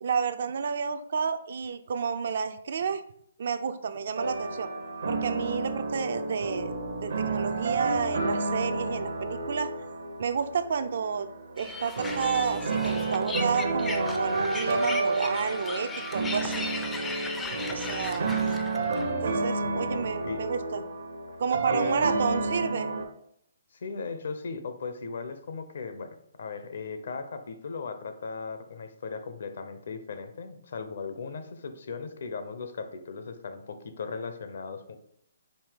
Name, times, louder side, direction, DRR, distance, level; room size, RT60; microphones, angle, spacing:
voice 1, 0.0-3.0 3.4-4.7 5.1-6.7 7.0-9.7 10.2-11.3 11.6-16.6 17.7-18.3 19.1-20.8 21.4-22.9, right 6 dB, 60° right, 11 dB, 0.4 m, -30 dB
sound 1, 4.2-23.0, right 3 dB, 75° right, 0.8 m, -31 dB
sound 2, 11.6-19.1, left 3 dB, 10° left, 0.3 m, -37 dB
voice 2, 18.2-18.5 19.6-20.4 21.7-21.9 23.7-35.0, left 4 dB, 65° left, 8 dB, 0.6 m, -37 dB
5.4 x 2.8 x 3.5 m, 0.69 s
hypercardioid pair, 155°, 0 cm